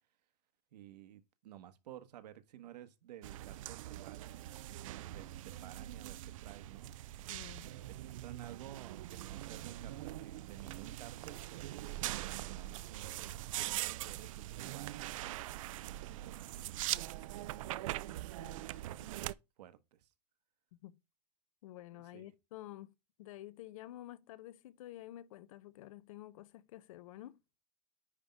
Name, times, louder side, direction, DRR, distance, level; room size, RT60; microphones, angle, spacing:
voice 1, 0.7-4.5 5.1-6.9 7.6-15.2 16.5-18.0 19.0-20.1 21.9-22.3, right 11 dB, 75° right, 1.4 m, -54 dB
sound 1, 3.2-19.3, right 15 dB, 55° right, 0.4 m, -42 dB
voice 2, 7.3-7.7 18.4-18.7 19.0-19.1 20.8-21.0 21.6-27.4, left 14 dB, 55° left, 0.7 m, -50 dB
10.0 x 3.6 x 5.2 m
supercardioid pair, 175°, 21 cm